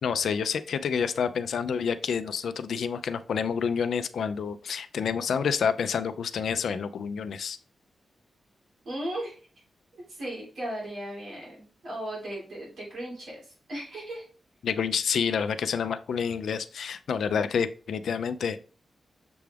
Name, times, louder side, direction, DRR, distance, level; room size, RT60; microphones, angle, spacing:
voice 1, 0.0-7.6 14.6-18.6, left 6 dB, 85° left, 11 dB, 0.3 m, -28 dB
voice 2, 8.8-9.5 9.9-14.3, right 1 dB, 75° right, -6 dB, 2.4 m, -37 dB
6.7 x 2.3 x 3.3 m, 0.38 s
wide cardioid pair, 170°, 0 cm